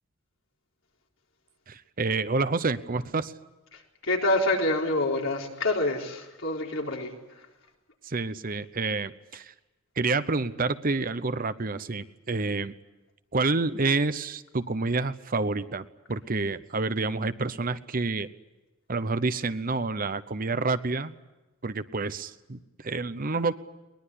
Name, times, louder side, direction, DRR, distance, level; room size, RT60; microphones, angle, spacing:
voice 1, 1.7-3.3 8.0-9.5 10.0-12.7 13.3-18.3 18.9-21.1 21.6-23.5, right 3 dB, 45° right, 13 dB, 0.8 m, -28 dB
voice 2, 4.1-7.1, left 2 dB, 70° left, 0 dB, 4.1 m, -26 dB
22.0 x 20.5 x 9.9 m, 1.1 s
head